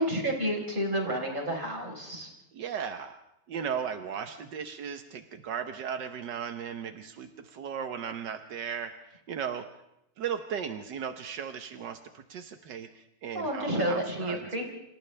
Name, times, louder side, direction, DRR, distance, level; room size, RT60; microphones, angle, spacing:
voice 1, 0.0-2.3 13.3-14.6, right 1 dB, 30° right, 0 dB, 4.8 m, -30 dB
voice 2, 2.5-3.2 3.5-9.7 10.2-14.6, right 7 dB, 80° right, 7 dB, 1.7 m, -36 dB
29.0 x 26.5 x 3.4 m, 0.84 s
omnidirectional pair, 1.8 m